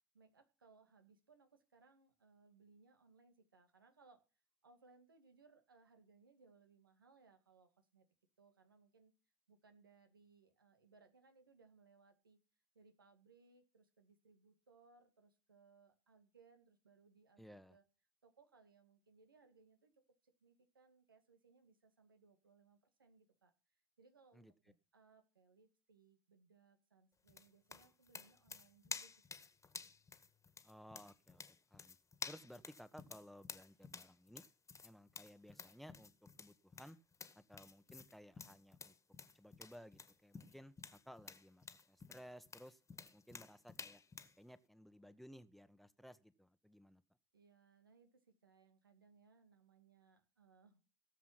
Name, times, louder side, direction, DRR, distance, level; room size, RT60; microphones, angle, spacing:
voice 1, 0.1-4.2 4.6-8.1 8.4-9.1 9.5-12.4 12.7-17.8 18.2-23.5 24.0-29.5 47.3-50.8, right 4 dB, 90° right, 2.1 m, -68 dB
voice 2, 17.4-17.8 24.3-24.5 30.6-31.4 31.7-32.0 32.2-34.4 34.8-36.1 36.4-37.0 37.3-38.9 39.3-42.8 43.1-44.0 44.4-47.0, equal, ahead, 1.3 m, -58 dB
sound 1, 27.3-44.4, left 5 dB, 25° left, 1.8 m, -52 dB
18.0 x 7.6 x 5.9 m
hypercardioid pair, 60°, 11 cm